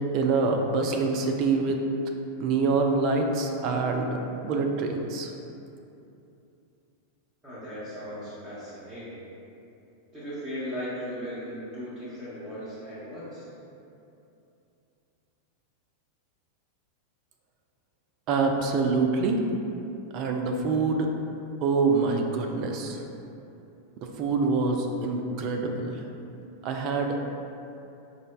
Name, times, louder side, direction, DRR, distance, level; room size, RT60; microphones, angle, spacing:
voice 1, 0.1-1.8 2.4-5.3 18.3-19.4 20.1-21.1 21.6-23.0 24.0-25.9 26.6-27.2, right 4 dB, 40° right, 2 dB, 0.3 m, -25 dB
voice 2, 7.4-9.2 10.1-13.5, equal, 10° right, -14 dB, 0.8 m, -37 dB
4.9 x 2.1 x 2.2 m, 2.8 s
figure-of-eight pair, 90°, 0 cm